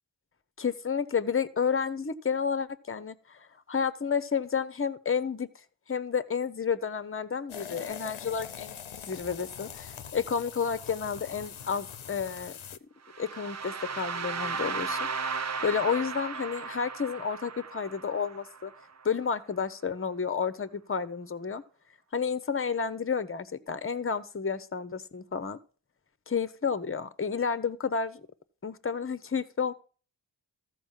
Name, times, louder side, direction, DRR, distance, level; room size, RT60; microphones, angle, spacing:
voice 1, 0.6-5.5 5.9-8.7 9.1-12.6 13.2-18.7 19.0-21.6 22.1-25.6 26.3-28.2 28.6-29.7, left 6 dB, 30° left, 14 dB, 0.8 m, -31 dB
sound 1, 7.5-12.8, left 8 dB, 90° left, 0.8 m, -43 dB
sound 2, 13.1-19.0, right 5 dB, 35° right, 0.5 m, -35 dB
13.5 x 4.7 x 7.3 m, 0.39 s
cardioid pair, 55°, 47 cm